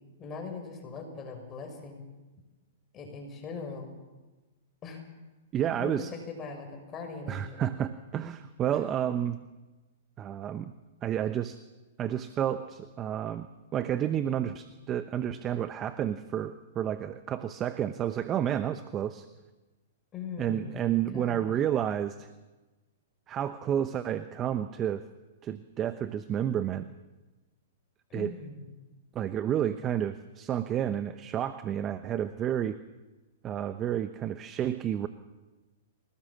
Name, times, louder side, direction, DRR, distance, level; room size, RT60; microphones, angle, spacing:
voice 1, 0.2-2.0 2.9-3.9 4.8-5.0 5.6-7.7 20.1-21.5 28.1-28.7, left 5 dB, 25° left, 4 dB, 6.1 m, -41 dB
voice 2, 5.5-6.1 7.3-9.4 10.2-10.7 11.0-11.6 12.0-13.5 13.7-19.3 20.4-22.3 23.3-25.1 25.4-26.8 28.1-28.3 29.1-32.8 33.4-35.1, right 10 dB, 25° right, 11 dB, 0.9 m, -30 dB
27.0 x 18.5 x 7.4 m, 1.2 s
hypercardioid pair, 135°, 0 cm